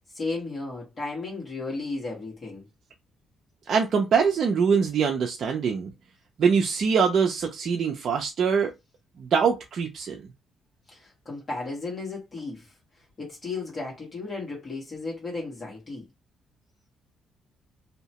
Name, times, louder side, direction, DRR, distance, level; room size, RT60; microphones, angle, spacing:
voice 1, 0.0-2.6 10.9-12.7 13.2-16.0, left 3 dB, 40° left, 1.4 m, -34 dB
voice 2, 3.7-5.9 6.4-8.7 9.2-10.2, right 6 dB, 60° right, 0.5 m, -23 dB
2.8 x 2.1 x 2.9 m
cardioid pair, 90°, 0 cm